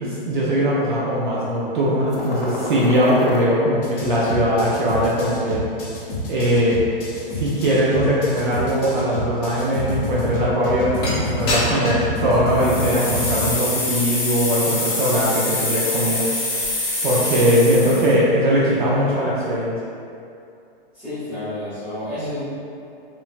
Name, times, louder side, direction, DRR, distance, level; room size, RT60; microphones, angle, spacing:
voice 1, 0.0-5.6 6.3-6.8 7.3-16.3 17.0-19.8, equal, 55° right, -7 dB, 0.5 m, -20 dB
sound 1, 2.1-3.4 3.8-13.5, left 3 dB, 65° left, 0.8 m, -29 dB
sound 2, 11.0-11.1 11.5-12.0 12.5-18.1, left 2 dB, 25° left, 0.6 m, -25 dB
voice 2, 20.9-22.4, left 1 dB, 5° right, -19 dB, 0.9 m, -30 dB
3.1 x 2.2 x 2.4 m, 2.5 s
hypercardioid pair, 170°, 30 cm